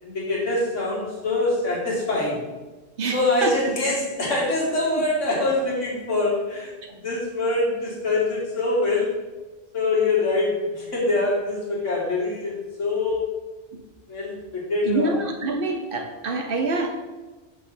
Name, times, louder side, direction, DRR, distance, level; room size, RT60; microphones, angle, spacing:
voice 1, 0.0-2.4 3.1-9.2 9.7-13.3 14.1-15.2, left 2 dB, 85° left, -4 dB, 2.0 m, -24 dB
voice 2, 3.0-3.5 14.8-16.9, right 3 dB, 50° right, 4 dB, 0.9 m, -26 dB
5.3 x 3.6 x 5.8 m, 1.2 s
omnidirectional pair, 1.2 m